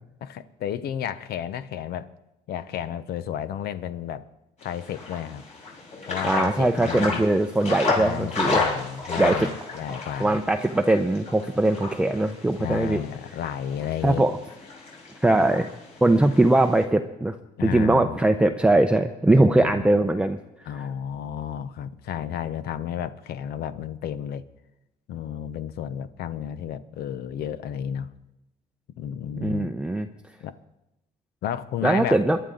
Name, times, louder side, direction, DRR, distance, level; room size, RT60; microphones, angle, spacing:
voice 1, 0.2-2.1 2.5-4.3 4.6-5.4 6.1-7.2 7.9-10.4 12.6-14.3 17.6-18.2 19.4-19.9 20.6-24.4 25.1-28.1 29.0-29.7 30.4-30.5 31.4-32.2, left 9 dB, 70° left, 0.8 m, -32 dB
sound 1, 4.6-16.8, left 3 dB, 45° left, 5.5 m, -32 dB
voice 2, 6.2-8.6 9.2-9.5 10.2-13.0 14.0-14.4 15.2-15.7 16.0-17.4 17.6-20.4 20.7-20.9 29.4-30.1 31.8-32.4, right 2 dB, 5° right, 0.6 m, -21 dB
22.0 x 11.0 x 3.9 m
cardioid pair, 110°, 17 cm